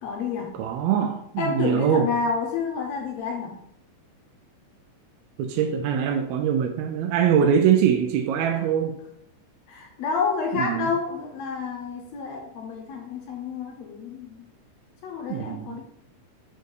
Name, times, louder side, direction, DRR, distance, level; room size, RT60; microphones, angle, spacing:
voice 1, 0.0-0.5 1.4-3.5 8.5-8.6 9.7-14.5 15.0-15.8, left 5 dB, 75° left, 1.7 m, -29 dB
voice 2, 0.6-2.1 5.4-8.9 10.5-10.9 15.3-15.8, right 8 dB, 80° right, 1.7 m, -23 dB
5.2 x 4.5 x 4.7 m
omnidirectional pair, 3.7 m